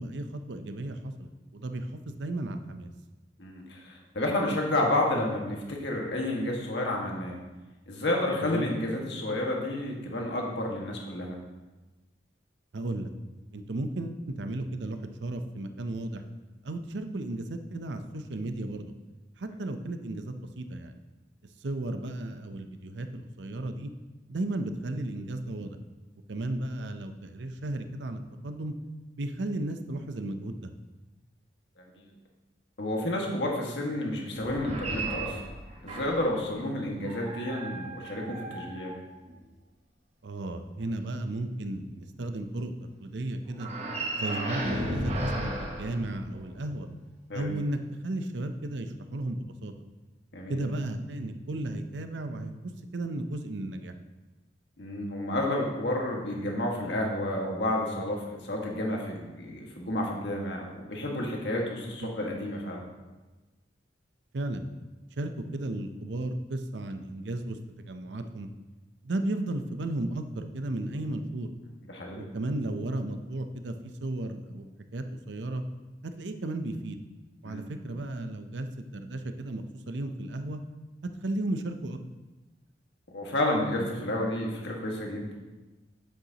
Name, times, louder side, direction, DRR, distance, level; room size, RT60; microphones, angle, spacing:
voice 1, 0.0-2.9 8.4-8.7 12.7-13.1 13.5-16.2 16.6-18.9 19.4-21.0 21.6-23.9 24.3-25.8 26.3-28.7 29.2-30.7 36.9-37.0 40.2-42.7 43.0-43.7 44.2-46.9 47.3-49.7 50.5-53.9 62.0-62.1 64.3-64.7 65.2-68.5 69.0-71.5 72.1-73.7 74.0-74.7 74.9-75.6 76.0-77.0 77.4-80.6 81.0-82.0, right 2 dB, 75° right, 8 dB, 0.6 m, -34 dB
voice 2, 3.4-7.4 7.9-11.4 31.8-32.1 32.8-35.5 35.8-38.9 47.3-47.5 50.3-50.7 54.8-62.8 71.9-72.3 77.4-77.6 83.1-85.3, left 1 dB, 70° left, -1 dB, 1.7 m, -30 dB
sound 1, 34.4-36.4 37.0-39.4 43.5-46.7, right 1 dB, 35° right, 1.1 m, -35 dB
8.9 x 7.9 x 2.9 m, 1.2 s
head